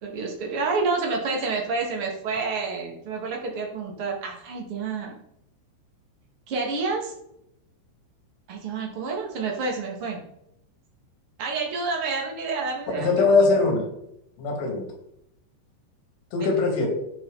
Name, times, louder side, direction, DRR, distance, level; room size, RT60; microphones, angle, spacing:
voice 1, 0.0-5.2 6.5-7.1 8.5-10.2 11.4-13.7 16.4-16.5, right 4 dB, 50° right, 0 dB, 1.8 m, -29 dB
voice 2, 12.9-13.9 14.4-14.9 16.3-16.9, left 3 dB, 75° left, 1 dB, 5.0 m, -21 dB
16.5 x 6.3 x 4.1 m, 0.80 s
omnidirectional pair, 5.6 m